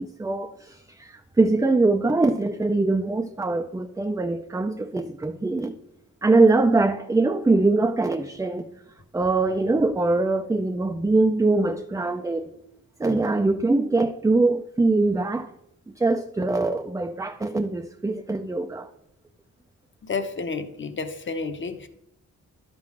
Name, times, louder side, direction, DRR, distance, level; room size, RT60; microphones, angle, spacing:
voice 1, 0.0-5.8 6.2-8.7 9.1-12.5 13.0-15.5 16.0-18.9, right 3 dB, 10° right, 0.4 m, -23 dB
voice 2, 20.0-21.9, left 4 dB, 40° left, 0.8 m, -30 dB
11.5 x 3.8 x 6.1 m
wide cardioid pair, 115°, 31 cm